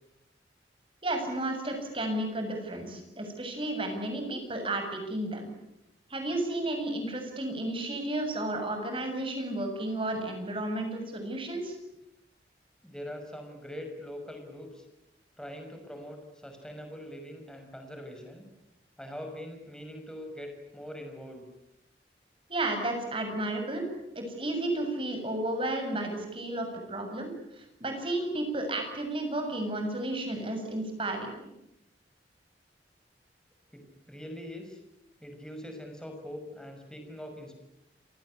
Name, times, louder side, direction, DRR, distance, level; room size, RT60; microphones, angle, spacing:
voice 1, 1.0-5.5 6.1-11.8 22.5-23.8 24.2-31.3, right 1 dB, 30° right, 5 dB, 7.3 m, -32 dB
voice 2, 12.8-14.8 15.4-18.4 19.0-21.4 33.7-34.8 35.2-37.6, equal, 5° left, 4 dB, 5.9 m, -43 dB
29.0 x 19.5 x 10.0 m, 0.87 s
head